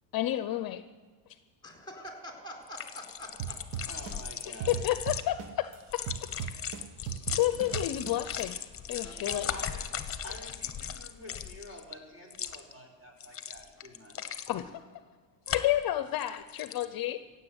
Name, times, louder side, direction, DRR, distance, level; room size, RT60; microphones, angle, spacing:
voice 1, 0.1-0.8 4.7-6.0 7.1-8.6 8.9-9.5 14.5-14.7 15.5-17.2, left 14 dB, 45° left, 11 dB, 0.7 m, -30 dB
voice 2, 1.6-3.6 6.7-6.8 9.0-9.5, equal, 10° left, 1 dB, 4.1 m, -45 dB
sound 1, 2.7-5.2 5.8-11.9 12.3-12.7 13.2-14.6 15.5-15.8 16.2-16.8, left 8 dB, 25° left, 1.1 m, -38 dB
sound 2, 3.4-5.7 6.1-8.4, right 9 dB, 75° right, 1.3 m, -36 dB
voice 3, 3.9-4.8 7.0-7.4 9.5-14.4, left 1 dB, 30° right, -1 dB, 5.1 m, -49 dB
16.0 x 7.7 x 8.0 m, 1.5 s
cardioid pair, 110°, 49 cm